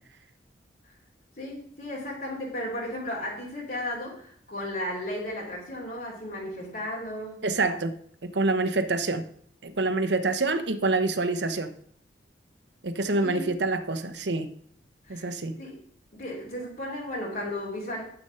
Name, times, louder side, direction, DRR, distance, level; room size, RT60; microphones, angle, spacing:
voice 1, 1.4-7.4 13.2-13.5 15.1-15.8 16.1-18.0, left 1 dB, 55° left, -3 dB, 3.1 m, -35 dB
voice 2, 7.4-7.9 8.2-9.2 9.6-11.7 12.8-14.5 15.1-15.6, right 3 dB, 75° right, 10 dB, 1.0 m, -26 dB
9.8 x 8.1 x 5.7 m, 0.63 s
head